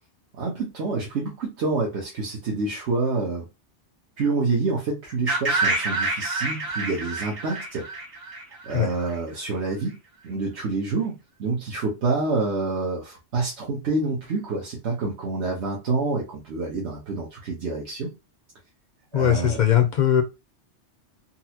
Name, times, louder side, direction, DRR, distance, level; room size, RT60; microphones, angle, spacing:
voice 1, 0.4-3.5 4.2-7.8 8.6-10.0 10.2-18.1 19.1-19.6, right 3 dB, 75° right, -2 dB, 1.2 m, -27 dB
sound 1, 5.3-9.1, right 3 dB, 45° right, 1.8 m, -27 dB
voice 2, 19.1-20.2, left 10 dB, 60° left, 6 dB, 0.5 m, -20 dB
4.1 x 2.1 x 2.8 m, 0.26 s
omnidirectional pair, 1.2 m